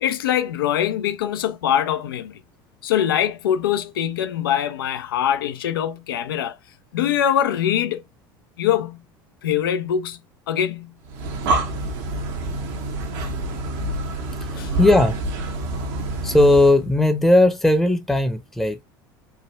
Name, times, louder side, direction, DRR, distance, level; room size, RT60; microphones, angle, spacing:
voice 1, 0.0-2.4 2.8-6.6 6.9-8.0 8.6-9.0 9.4-10.2 10.5-10.9 14.6-14.7, left 10 dB, 85° left, 0.5 m, -23 dB
Breathing, 11.1-16.8, right 2 dB, 70° right, 0.8 m, -27 dB
voice 2, 14.8-15.2 16.2-18.8, left 1 dB, ahead, 0.7 m, -17 dB
3.4 x 2.1 x 2.9 m
hypercardioid pair, 80°, 12 cm